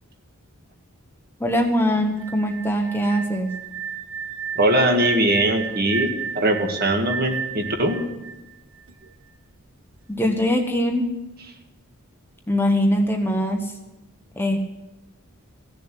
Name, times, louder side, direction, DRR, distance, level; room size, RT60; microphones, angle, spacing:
voice 1, 1.4-3.5 10.1-11.1 12.5-13.7 14.4-14.6, equal, 10° left, 3 dB, 1.0 m, -22 dB
sound 1, 2.2-9.1, right 6 dB, 65° right, 0.8 m, -32 dB
voice 2, 4.6-6.1 6.4-8.0, right 1 dB, 45° right, 4 dB, 1.9 m, -21 dB
16.5 x 7.0 x 9.9 m, 1.0 s
head